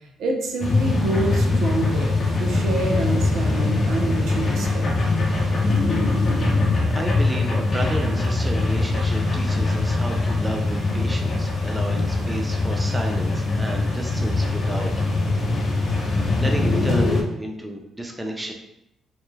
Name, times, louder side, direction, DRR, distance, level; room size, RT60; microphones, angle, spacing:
voice 1, 0.2-2.1 2.4-4.8, right 2 dB, 75° right, 1 dB, 0.4 m, -27 dB
sound 1, 0.6-17.2, left 2 dB, 45° left, 0.6 m, -22 dB
voice 2, 6.9-15.1 16.0-18.5, right 1 dB, 10° right, 2 dB, 0.4 m, -32 dB
2.3 x 2.1 x 3.1 m, 0.81 s
cardioid pair, 90°, 0 cm